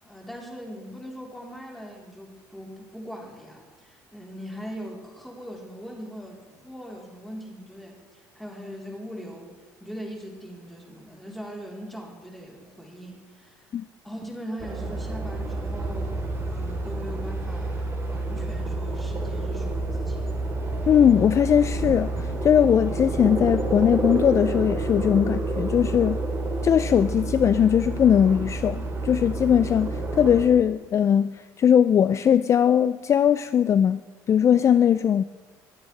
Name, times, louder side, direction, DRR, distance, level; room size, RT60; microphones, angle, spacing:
voice 1, 0.0-9.5 9.8-13.7 14.0-20.4, equal, ahead, -2 dB, 3.6 m, -40 dB
sound 1, 14.6-30.4, right 2 dB, 35° right, 3.5 m, -29 dB
voice 2, 20.9-26.2 26.6-34.0 34.3-35.2, left 8 dB, 40° left, 14 dB, 0.3 m, -20 dB
23.5 x 8.8 x 3.3 m, 1.3 s
supercardioid pair, 90°, 8 cm